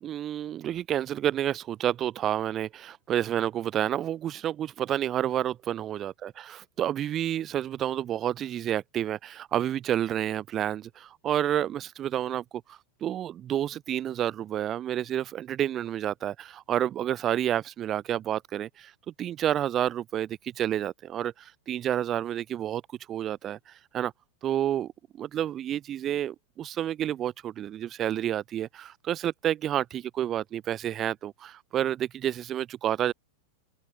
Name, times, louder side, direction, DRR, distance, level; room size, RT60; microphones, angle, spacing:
voice 1, 0.0-12.4 12.7-22.8 23.1-24.1 24.4-24.9 25.2-33.1, right 11 dB, 30° right, 0.4 m, -30 dB
figure-of-eight pair, 90°, 0 cm